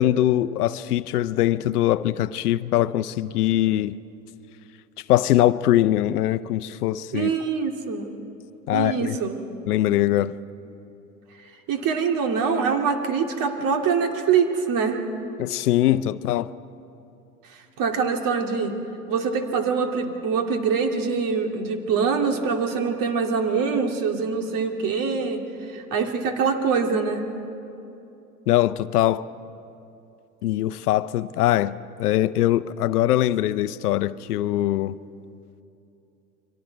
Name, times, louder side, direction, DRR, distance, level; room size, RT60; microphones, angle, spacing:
voice 1, 0.0-4.0 5.1-7.3 8.7-9.2 9.7-10.3 15.4-16.5 28.5-29.2 30.4-34.9, left 13 dB, 75° left, 15 dB, 0.7 m, -22 dB
voice 2, 7.1-8.2 8.7-9.4 11.7-15.0 17.5-18.8 19.1-27.3, right 5 dB, 45° right, 4 dB, 2.5 m, -24 dB
30.0 x 23.5 x 4.7 m, 2.8 s
hypercardioid pair, 80°, 46 cm